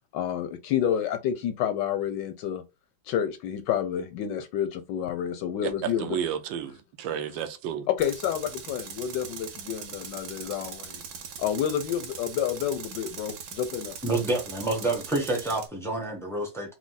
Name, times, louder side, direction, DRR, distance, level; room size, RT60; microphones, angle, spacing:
voice 1, 0.1-2.6 3.1-6.2 7.9-11.0 11.4-14.0, left 9 dB, 75° left, 1.1 m, -29 dB
voice 2, 5.6-7.9, right 9 dB, 80° right, 1.3 m, -32 dB
Tools, 8.0-15.7, right 7 dB, 65° right, 1.1 m, -41 dB
voice 3, 14.0-16.7, right 2 dB, ahead, 0.6 m, -28 dB
4.7 x 2.0 x 3.9 m
omnidirectional pair, 2.1 m